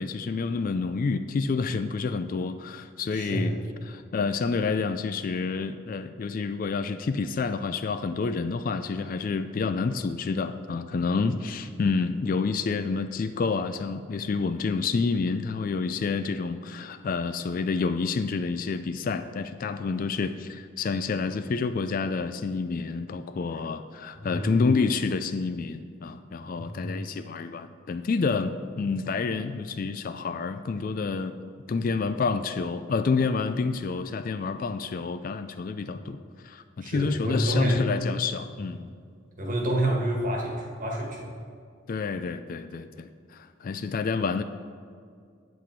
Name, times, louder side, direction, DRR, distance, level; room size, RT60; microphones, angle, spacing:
voice 1, 0.0-3.5 3.9-31.4 31.7-38.9 41.9-44.4, left 4 dB, 40° left, 11 dB, 0.3 m, -28 dB
voice 2, 3.1-3.5 11.2-11.4 24.2-24.5 26.5-27.0 35.9-36.1 36.8-37.8 39.4-41.3, right 1 dB, 40° right, 0 dB, 1.5 m, -29 dB
8.5 x 8.1 x 4.6 m, 2.1 s
head